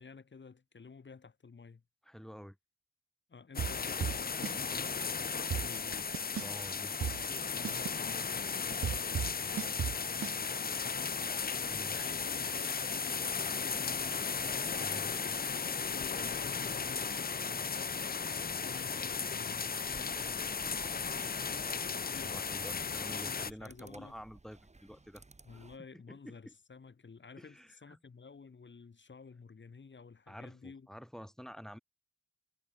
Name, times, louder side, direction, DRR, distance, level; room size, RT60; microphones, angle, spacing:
voice 1, 0.0-1.8 3.3-6.1 7.1-11.2 11.5-14.3 14.6-15.4 15.8-17.7 18.6-20.5 22.1-22.5 22.8-24.1 25.4-30.9, left 5 dB, 60° left, 5.4 m, -52 dB
voice 2, 2.0-2.6 6.4-7.2 11.6-12.0 14.7-15.1 22.2-25.2 25.5-25.6 25.9-26.5 27.4-28.0 30.3-31.8, equal, ahead, 4.3 m, -49 dB
sound 1, 3.5-23.5, left 5 dB, 45° left, 0.7 m, -36 dB
sound 2, 3.6-4.6 4.9-5.0 5.3-6.6 7.0-10.4, right 9 dB, 90° right, 0.6 m, -36 dB
sound 3, 19.9-25.8, right 3 dB, 30° right, 5.0 m, -57 dB
wide cardioid pair, 90°, 21 cm